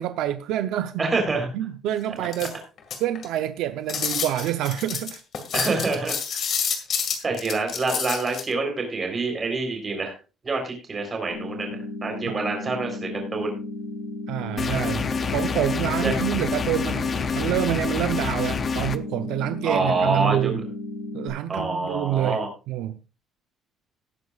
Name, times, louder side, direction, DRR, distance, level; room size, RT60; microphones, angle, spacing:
voice 1, 0.0-1.1 1.5-2.6 3.0-5.2 12.3-12.4 14.3-15.1 15.3-20.6 21.1-23.0, right 12 dB, 75° right, 0.7 m, -27 dB
voice 2, 1.0-1.5 5.5-6.2 7.2-10.1 10.4-13.6 16.0-16.1 19.6-20.5 21.5-22.5, right 3 dB, 20° right, 3.8 m, -26 dB
sound 1, 2.2-3.4 3.9-8.4, left 7 dB, 40° left, 2.1 m, -28 dB
sound 2, 11.3-21.3, left 2 dB, 75° left, 6.9 m, -34 dB
sound 3, 14.6-19.0, left 5 dB, 25° left, 0.6 m, -27 dB
18.5 x 9.5 x 2.4 m
cardioid pair, 180°, 0 cm